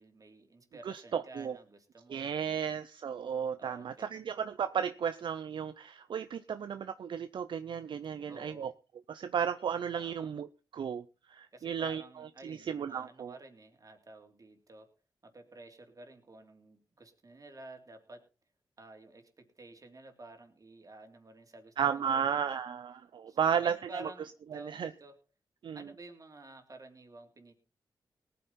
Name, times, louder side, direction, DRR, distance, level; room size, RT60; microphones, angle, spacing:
voice 1, 0.0-2.8 3.6-4.3 8.3-8.7 9.9-10.3 11.5-14.9 15.2-18.3 18.8-22.6 23.3-25.2 25.7-27.5, right 2 dB, 45° right, 5 dB, 3.2 m, -51 dB
voice 2, 0.8-1.6 2.1-8.7 9.1-10.5 10.7-13.4 21.8-24.1 24.5-24.9 25.6-25.8, right 7 dB, 70° right, 11 dB, 0.6 m, -34 dB
18.5 x 9.4 x 4.3 m, 0.33 s
cardioid pair, 60°, 8 cm